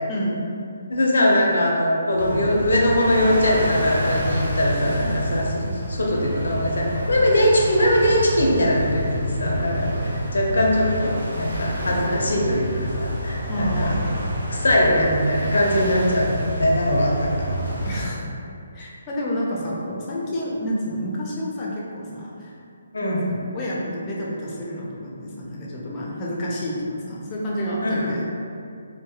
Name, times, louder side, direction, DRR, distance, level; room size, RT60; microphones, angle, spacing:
voice 1, 0.9-5.6 5.9-9.9 10.3-13.9 14.5-17.6 22.9-23.2 27.8-28.2, left 1 dB, 80° left, -2 dB, 0.4 m, -21 dB
sound 1, 2.2-18.1, equal, 85° right, 0.7 m, -28 dB
voice 2, 13.5-14.2 17.8-18.3 18.7-22.5 23.0-28.2, equal, 25° left, -5 dB, 0.5 m, -29 dB
2.7 x 2.0 x 2.3 m, 2.4 s
hypercardioid pair, 155°, 0 cm